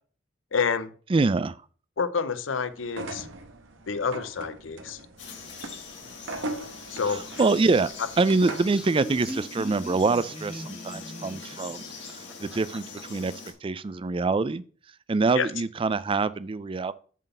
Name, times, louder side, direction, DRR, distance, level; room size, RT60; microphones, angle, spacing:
voice 1, 0.5-0.9 2.0-3.3 3.9-5.0 6.9-7.2 15.4-15.5, left 5 dB, 90° left, 0.7 m, -28 dB
voice 2, 1.1-1.6 7.1-11.8 12.1-12.8 13.1-13.3 13.6-14.6 15.1-16.9, right 3 dB, 30° right, 0.4 m, -25 dB
sound 1, 2.9-8.8, right 1 dB, 85° right, 1.2 m, -39 dB
Frog, 5.2-13.5, left 5 dB, 70° left, 2.4 m, -42 dB
Laughter, 8.4-13.0, equal, 5° right, 0.7 m, -40 dB
7.4 x 4.0 x 6.6 m
head